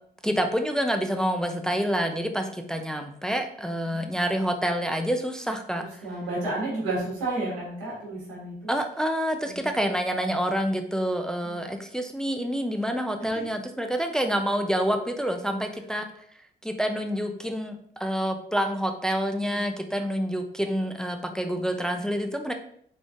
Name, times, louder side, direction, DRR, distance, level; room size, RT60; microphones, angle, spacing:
voice 1, 0.2-5.8 8.7-16.1 16.6-22.5, equal, 5° left, 5 dB, 0.5 m, -27 dB
voice 2, 6.0-8.7 9.4-9.7 11.4-11.7 13.2-13.4 19.4-19.7, right 2 dB, 90° right, -5 dB, 1.4 m, -32 dB
3.9 x 3.2 x 2.4 m, 0.64 s
hypercardioid pair, 45°, 21 cm